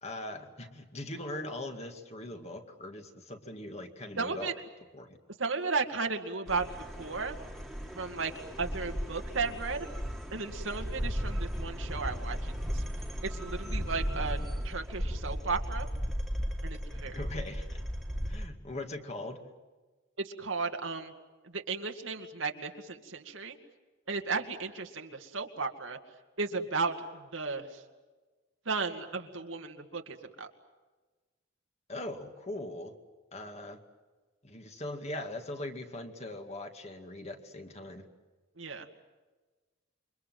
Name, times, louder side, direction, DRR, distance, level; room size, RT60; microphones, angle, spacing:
voice 1, 0.0-4.5 4.9-5.2 17.0-17.8 18.3-19.4 31.9-33.0 33.3-33.8 34.4-38.1, left 1 dB, 35° left, 5 dB, 2.2 m, -41 dB
voice 2, 4.2-4.5 5.4-6.7 7.0-7.4 7.9-8.3 8.6-9.9 10.3-12.8 13.2-14.4 14.6-15.9 16.6-17.2 20.2-21.1 21.4-23.6 24.1-26.0 26.4-27.8 28.7-30.5 38.6-38.9, right 4 dB, 90° right, 4 dB, 2.3 m, -34 dB
sound 1, 6.5-18.5, equal, ahead, 2.3 m, -36 dB
28.5 x 24.0 x 7.7 m, 1.3 s
head